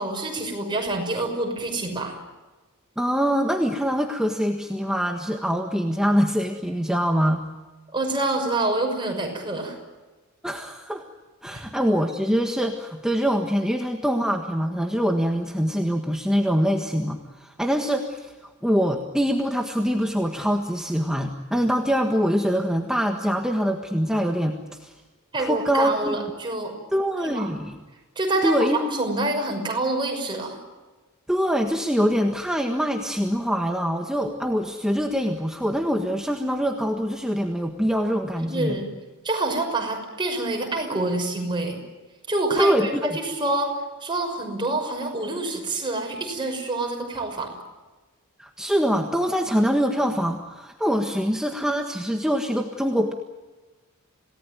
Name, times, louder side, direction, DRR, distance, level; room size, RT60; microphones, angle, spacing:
voice 1, 0.0-2.2 7.9-9.8 11.5-11.6 25.3-26.7 27.2-27.6 28.2-30.6 38.5-38.9 39.2-41.8 42.3-47.5, right 2 dB, 20° right, 2 dB, 6.0 m, -27 dB
voice 2, 3.0-7.4 10.4-11.0 11.4-18.3 18.6-24.9 25.4-26.2 26.9-27.8 28.4-28.9 31.3-38.8 42.6-43.2 48.4-53.1, equal, 5° right, 3 dB, 1.5 m, -24 dB
27.5 x 18.5 x 9.2 m, 1.2 s
head